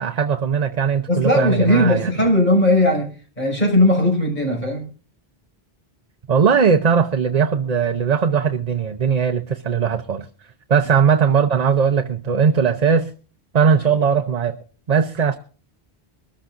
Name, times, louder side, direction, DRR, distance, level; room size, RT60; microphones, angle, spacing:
voice 1, 0.0-2.1 6.3-10.3 10.7-13.1 13.5-14.6 14.9-15.4, right 6 dB, 45° right, 0.8 m, -19 dB
voice 2, 1.1-4.9, left 1 dB, 45° left, 6.0 m, -18 dB
23.0 x 14.0 x 2.5 m
omnidirectional pair, 1.0 m